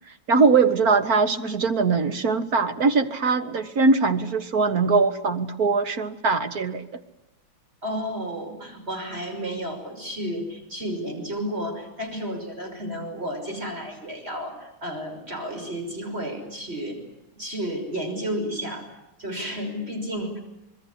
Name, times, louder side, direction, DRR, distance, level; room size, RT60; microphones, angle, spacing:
voice 1, 0.3-7.0, right 4 dB, 45° right, 10 dB, 1.9 m, -21 dB
voice 2, 7.8-17.0 17.4-18.9 19.2-20.4, equal, 25° right, 4 dB, 6.2 m, -32 dB
26.0 x 21.5 x 9.9 m, 0.92 s
omnidirectional pair, 2.3 m